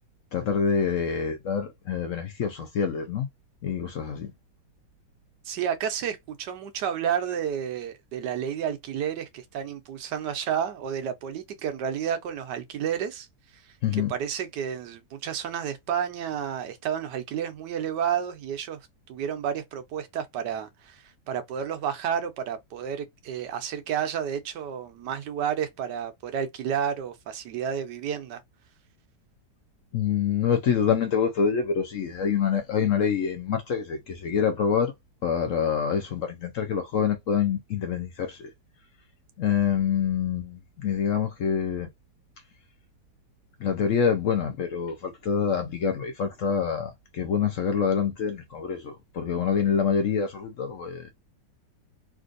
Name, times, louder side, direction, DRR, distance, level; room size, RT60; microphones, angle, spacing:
voice 1, 0.3-3.3 3.6-4.3 13.8-14.1 29.9-34.9 35.2-38.5 39.4-41.9 43.6-51.1, left 7 dB, 65° left, 0.8 m, -26 dB
voice 2, 5.4-13.3 13.5-13.6 14.1-18.8 19.1-28.4, right 8 dB, 80° right, 1.3 m, -31 dB
3.4 x 2.6 x 2.4 m
omnidirectional pair, 1.8 m